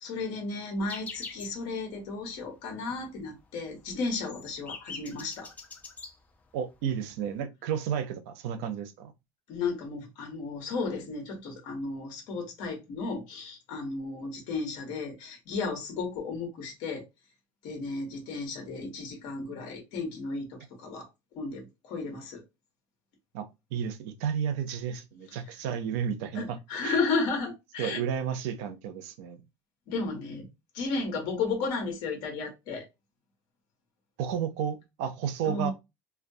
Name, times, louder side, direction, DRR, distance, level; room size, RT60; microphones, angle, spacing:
voice 1, 0.0-5.5 9.5-17.0 17.6-21.1 21.4-22.4 26.3-28.0 29.9-30.5 30.7-32.8 35.4-35.7, left 4 dB, 60° left, 1.0 m, -33 dB
sound 1, 0.9-1.6 1.9-2.0 2.3-2.7 3.0-3.1 3.4-6.2 6.9-7.0 7.2-7.4, left 4 dB, 20° left, 0.4 m, -43 dB
voice 2, 6.5-9.1 23.3-27.0 27.8-29.4 34.2-35.7, right 8 dB, 80° right, 0.5 m, -32 dB
2.2 x 2.2 x 2.6 m
cardioid pair, 145°, 8 cm